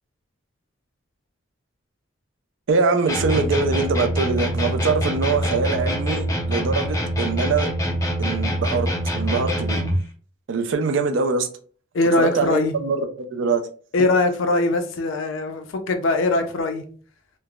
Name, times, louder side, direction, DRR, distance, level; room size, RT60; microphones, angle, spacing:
voice 1, 2.7-7.7 8.2-8.9 9.1-9.8 10.5-11.5 12.2-13.1 13.3-13.6, right 4 dB, 65° right, 0.4 m, -23 dB
sound 1, 3.1-10.1, equal, 15° left, 0.5 m, -24 dB
voice 2, 11.9-12.8 13.9-16.8, left 2 dB, 75° left, 0.4 m, -21 dB
3.2 x 2.0 x 2.2 m
head